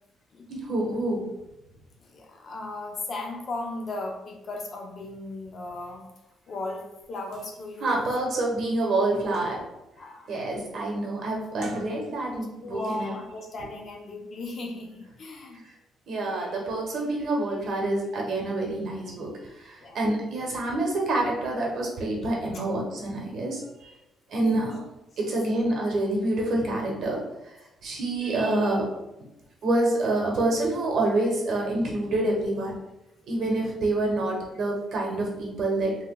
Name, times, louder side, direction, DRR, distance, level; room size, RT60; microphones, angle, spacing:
voice 1, 0.5-1.3 7.8-9.6 10.3-13.1 16.1-23.9 24.3-24.8 25.2-27.5 27.8-28.8 29.6-32.7 33.3-36.0, right 2 dB, 60° right, -1 dB, 1.0 m, -27 dB
voice 2, 2.0-6.1 6.5-8.0 10.0-10.3 12.6-15.6 19.8-20.0 24.5-24.7, left 2 dB, 45° left, 1 dB, 0.6 m, -36 dB
sound 1, 7.0-7.1 7.3-7.5 8.0-8.1 8.5-9.9 10.3-10.6 11.4-12.4 12.8-13.0, right 1 dB, 85° right, 0.7 m, -47 dB
3.3 x 3.3 x 2.2 m, 0.92 s
cardioid pair, 115°, 0 cm